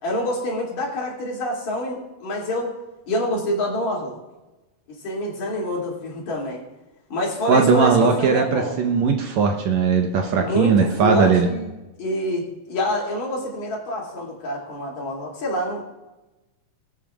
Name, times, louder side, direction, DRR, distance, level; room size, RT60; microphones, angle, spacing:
voice 1, 0.0-2.7 3.1-4.2 4.9-6.6 7.1-8.8 10.4-11.7 12.0-15.8, left 1 dB, 65° left, -3 dB, 3.9 m, -27 dB
voice 2, 7.5-11.5, right 5 dB, 70° right, 3 dB, 2.0 m, -18 dB
22.0 x 8.7 x 2.4 m, 1.1 s
omnidirectional pair, 3.7 m